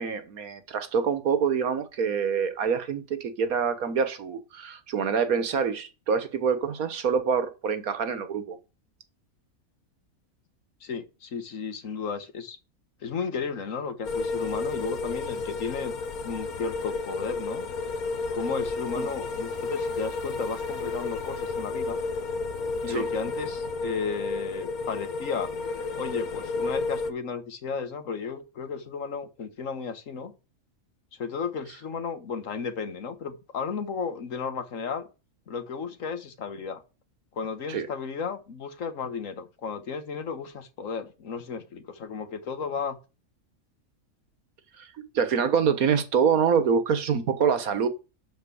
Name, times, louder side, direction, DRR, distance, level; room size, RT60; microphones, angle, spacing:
voice 1, 0.0-8.6 19.0-19.1 22.9-23.1 37.7-37.9 44.8-47.9, right 6 dB, 75° right, 1.7 m, -26 dB
voice 2, 10.8-12.6 13.0-15.9 16.2-17.6 18.3-22.0 22.8-25.5 25.9-30.3 31.2-35.1 35.5-36.8 37.3-43.0, left 5 dB, 65° left, 1.6 m, -34 dB
sound 1, 14.0-27.1, left 3 dB, 80° left, 1.4 m, -32 dB
11.5 x 4.5 x 7.0 m
omnidirectional pair, 1.5 m